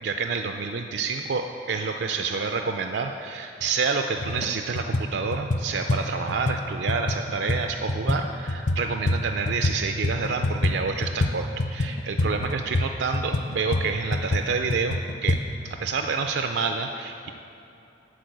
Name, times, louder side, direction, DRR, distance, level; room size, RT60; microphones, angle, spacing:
voice 1, 0.0-17.3, right 4 dB, 70° right, 5 dB, 0.4 m, -28 dB
sound 1, 3.6-3.7 4.2-4.5 4.7-9.8 10.0-15.4, left 2 dB, 40° left, 0.5 m, -26 dB
11.5 x 4.5 x 7.8 m, 3.0 s
head